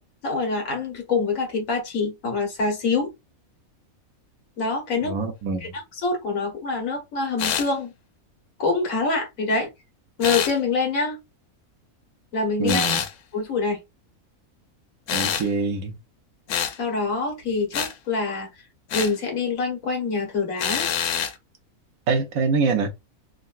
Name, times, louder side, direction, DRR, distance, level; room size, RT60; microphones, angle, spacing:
voice 1, 0.2-3.1 4.6-5.2 5.6-7.9 8.6-9.7 10.2-11.2 12.3-12.9 13.3-13.8 16.8-18.5 18.9-20.9, left 4 dB, 70° left, 1.5 m, -25 dB
voice 2, 5.0-5.7 12.6-13.0 15.1-16.0 22.1-22.9, right 4 dB, 75° right, 1.1 m, -24 dB
sound 1, 7.4-7.7 10.2-10.5 12.7-13.1 15.1-15.5 16.5-16.8 17.7-17.9 18.9-19.1 20.6-21.3, left 8 dB, 85° left, 1.1 m, -25 dB
3.7 x 2.2 x 2.3 m
omnidirectional pair, 1.5 m